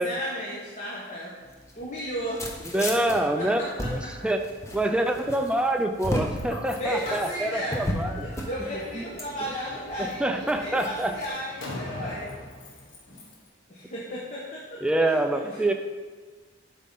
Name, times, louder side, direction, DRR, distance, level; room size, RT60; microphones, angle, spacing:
voice 1, 0.0-1.4 1.7-2.4 2.8-4.3 6.8-12.3 13.7-14.8 15.3-15.6, equal, 40° left, -5 dB, 1.2 m, -34 dB
sound 1, 1.4-11.3, equal, 15° left, 0.8 m, -35 dB
voice 2, 2.7-4.4 4.7-8.3 8.9-9.0 10.0-11.1 14.8-15.7, right 1 dB, 5° right, 5 dB, 0.4 m, -26 dB
Slam, 6.0-13.5, left 1 dB, 75° left, 1.3 m, -43 dB
8.2 x 3.7 x 5.4 m, 1.5 s
head